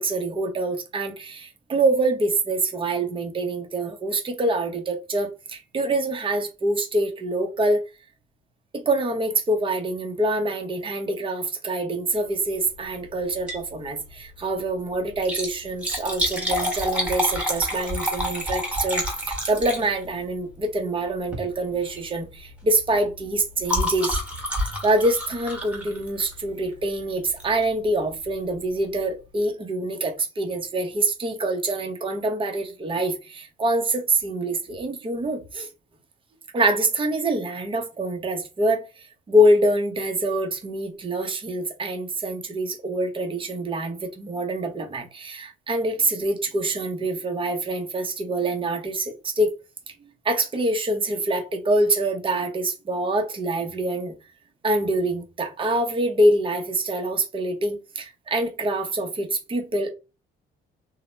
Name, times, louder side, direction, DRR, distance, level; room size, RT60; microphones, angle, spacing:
voice 1, 0.0-7.8 8.7-24.2 24.8-35.7 36.5-49.5 50.2-54.1 54.6-59.9, right 1 dB, 25° right, 0.7 m, -25 dB
Liquid, 13.3-13.7 14.1-14.2 15.1-20.2 21.2-21.5 21.8-22.1 22.4-26.5 27.4-27.7 28.2-28.3 28.5-28.6, equal, 5° right, 1.2 m, -28 dB
2.7 x 2.0 x 3.1 m
cardioid pair, 90°, 20 cm